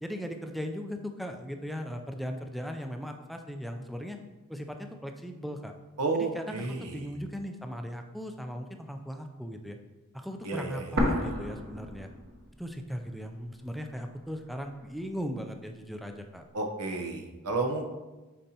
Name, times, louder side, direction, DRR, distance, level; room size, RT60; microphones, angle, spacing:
voice 1, 0.0-4.2 4.5-5.7 6.1-9.8 10.1-12.1 12.6-16.4, equal, ahead, 5 dB, 0.3 m, -38 dB
voice 2, 6.0-7.0 10.4-11.1 16.5-17.8, right 3 dB, 90° right, 3 dB, 0.9 m, -32 dB
sound 1, 11.0-12.9 13.2-13.3 14.0-15.0, equal, 50° right, 1.0 m, -31 dB
8.8 x 4.2 x 2.8 m, 1.2 s
head